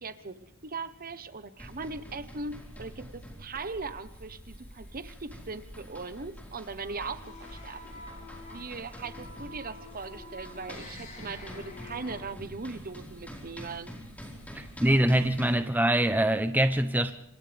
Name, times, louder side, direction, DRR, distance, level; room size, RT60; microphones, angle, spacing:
voice 1, 0.0-8.0 8.5-13.9, right 4 dB, 40° right, 1.2 m, -39 dB
sound 1, 1.6-15.6, equal, 5° left, 4.7 m, -46 dB
sound 2, 6.8-12.2, left 2 dB, 35° left, 6.6 m, -47 dB
voice 2, 14.5-17.1, right 1 dB, 10° right, 0.8 m, -24 dB
28.0 x 27.0 x 3.6 m
head